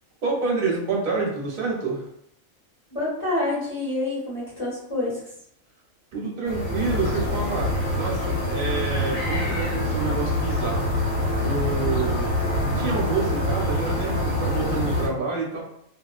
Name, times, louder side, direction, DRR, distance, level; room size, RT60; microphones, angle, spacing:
voice 1, 0.2-2.0 6.1-10.9 11.4-12.3 12.7-15.6, right 4 dB, 50° right, -2 dB, 0.8 m, -28 dB
voice 2, 2.9-5.2, left 2 dB, 25° left, -9 dB, 1.4 m, -27 dB
sound 1, 6.5-15.1, left 1 dB, 75° left, 1.2 m, -25 dB
2.7 x 2.3 x 2.3 m, 0.70 s
omnidirectional pair, 1.4 m